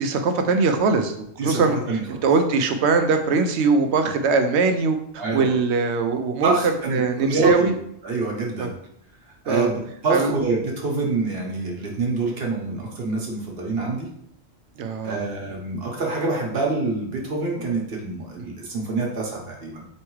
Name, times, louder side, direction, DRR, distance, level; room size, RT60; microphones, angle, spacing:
voice 1, 0.0-6.5 6.9-7.7 8.6-8.7 9.5-9.7 10.1-10.3 14.8-15.3 18.4-18.5, right 4 dB, 75° right, 6 dB, 0.9 m, -21 dB
voice 2, 1.4-2.2 5.2-5.5 6.4-7.7 8.0-8.7 9.4-14.1 15.0-19.8, right 3 dB, 60° right, -1 dB, 1.2 m, -26 dB
4.6 x 3.1 x 3.1 m, 0.71 s
omnidirectional pair, 1.1 m